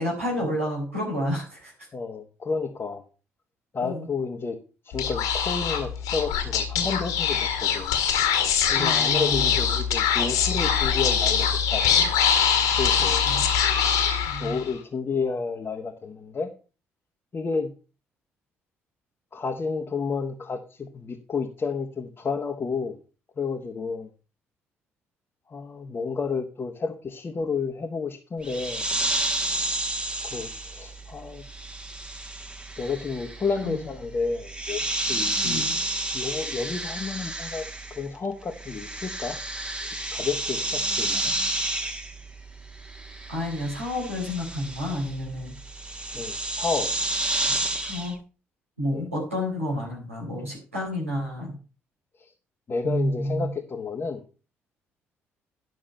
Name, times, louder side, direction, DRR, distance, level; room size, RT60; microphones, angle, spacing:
voice 1, 0.0-1.7 3.8-4.1 8.7-9.4 13.2-13.4 14.2-14.6 33.6-33.9 35.4-35.8 43.3-45.5 47.5-47.6 47.8-48.1 48.8-51.5 52.8-53.5, left 1 dB, 85° right, -4 dB, 3.7 m, -30 dB
voice 2, 1.9-3.0 3.7-4.6 4.8-7.9 8.7-12.0 12.8-13.2 14.4-16.5 17.3-17.7 19.3-23.0 23.4-24.1 25.5-28.8 30.2-31.4 32.8-35.6 36.1-37.6 37.9-39.4 39.8-41.3 46.1-46.9 48.9-49.1 52.2-52.3 52.7-54.2, left 4 dB, 35° left, 2 dB, 1.2 m, -31 dB
Speech / Whispering, 4.9-14.7, left 7 dB, 60° left, 1.8 m, -23 dB
sound 1, 28.4-38.2 38.4-48.1, right 1 dB, 15° right, 1.5 m, -31 dB
11.0 x 6.3 x 5.4 m, 0.34 s
figure-of-eight pair, 45°, 7 cm